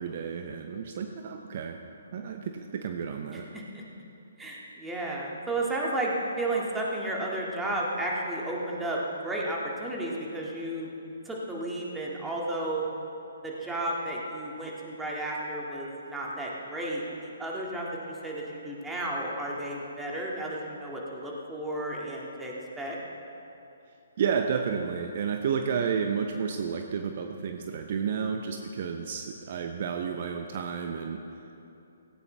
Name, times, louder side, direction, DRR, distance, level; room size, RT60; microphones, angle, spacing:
voice 1, 0.0-1.8 2.1-3.5 24.2-31.2, right 6 dB, 45° right, 5 dB, 0.8 m, -31 dB
voice 2, 3.3-3.8 4.4-10.9 11.3-12.8 13.4-23.0, right 1 dB, 10° right, -4 dB, 2.2 m, -33 dB
17.0 x 16.5 x 3.4 m, 2.8 s
figure-of-eight pair, 135°, 0 cm